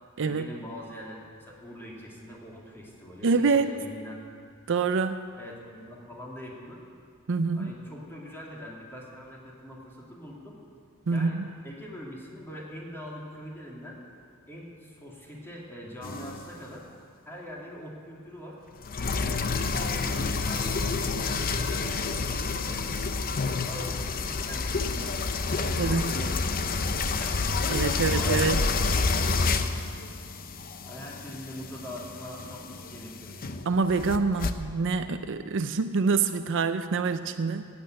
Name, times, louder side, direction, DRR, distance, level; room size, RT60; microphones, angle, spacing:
voice 1, 0.2-4.2 4.6-4.7 5.4-6.8 7.5-10.6 11.1-11.4 11.6-14.0 14.5-16.8 17.2-18.6 19.3-22.8 23.1-25.3 25.5-27.4 27.9-30.0 30.9-33.4, equal, 10° left, -3 dB, 2.7 m, -43 dB
voice 2, 3.2-3.7 4.7-5.3 7.3-7.7 11.1-11.5 25.8-26.1 27.7-28.6 33.7-37.6, right 4 dB, 60° right, 9 dB, 0.5 m, -26 dB
sound 1, 16.0-16.6 18.8-34.5, left 4 dB, 40° left, 0.7 m, -29 dB
14.5 x 8.9 x 9.1 m, 2.2 s
head